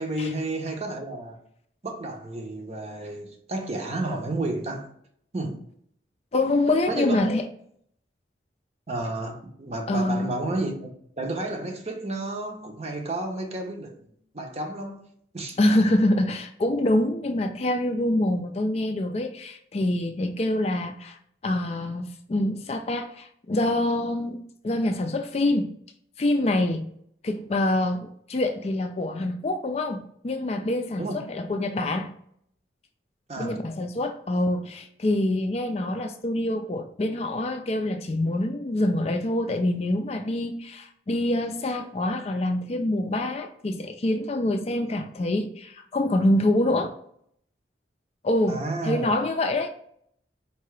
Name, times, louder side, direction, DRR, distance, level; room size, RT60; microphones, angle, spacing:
voice 1, 0.0-1.4 1.8-4.9 5.3-5.6 6.9-7.3 8.9-10.9 11.2-14.0 14.3-15.6 31.0-31.2 33.3-33.7 48.5-49.1, right 2 dB, 35° right, 0.7 m, -31 dB
voice 2, 6.3-7.4 9.9-10.3 15.6-21.2 21.4-25.7 26.2-26.9 27.2-32.1 33.4-46.9 48.2-49.7, left 1 dB, 35° left, 0.4 m, -25 dB
4.5 x 2.8 x 3.2 m
head